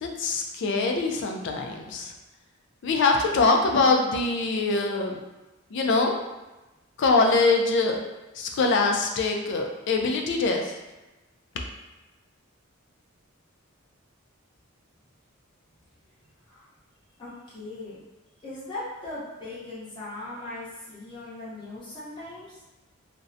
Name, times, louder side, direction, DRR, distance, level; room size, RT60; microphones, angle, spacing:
voice 1, 0.0-2.1 2.8-5.2 5.7-6.1 7.0-8.0 8.4-10.7, left 3 dB, 55° left, 2 dB, 0.3 m, -23 dB
voice 2, 17.2-18.0 18.4-22.6, left 2 dB, 20° left, -10 dB, 0.8 m, -39 dB
2.4 x 2.0 x 2.6 m, 1.1 s
head